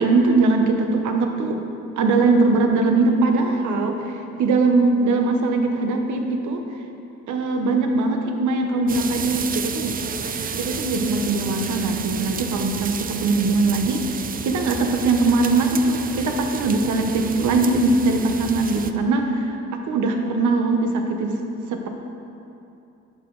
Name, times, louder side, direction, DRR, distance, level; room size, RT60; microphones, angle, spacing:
voice 1, 0.0-1.6 2.0-6.6 7.3-10.0 10.5-19.6 19.8-21.4 21.7-21.9, right 3 dB, 75° right, 4 dB, 0.9 m, -21 dB
sound 1, 8.9-18.9, right 6 dB, 30° right, 0.4 m, -31 dB
11.0 x 4.9 x 3.8 m, 2.8 s
cardioid pair, 90°, 30 cm